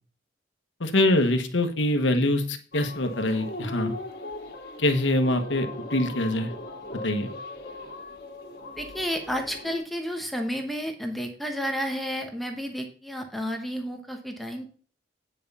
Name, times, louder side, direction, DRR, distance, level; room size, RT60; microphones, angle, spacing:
voice 1, 0.8-3.9 4.8-6.5 7.0-7.3, left 1 dB, 80° left, 7 dB, 1.3 m, -24 dB
sound 1, 2.7-9.8, left 1 dB, 55° left, 2.4 m, -39 dB
voice 2, 8.7-14.7, equal, ahead, 3 dB, 1.0 m, -31 dB
9.5 x 5.6 x 5.4 m, 0.41 s
head